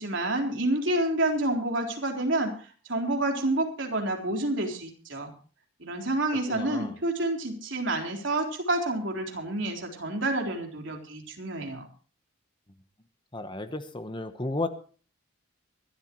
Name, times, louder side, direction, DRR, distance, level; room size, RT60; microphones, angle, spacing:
voice 1, 0.0-5.3 5.8-11.8, right 2 dB, 60° right, 2 dB, 3.8 m, -29 dB
voice 2, 6.5-7.0 13.3-14.7, left 2 dB, 25° left, 9 dB, 1.0 m, -33 dB
24.0 x 13.0 x 3.1 m, 0.38 s
head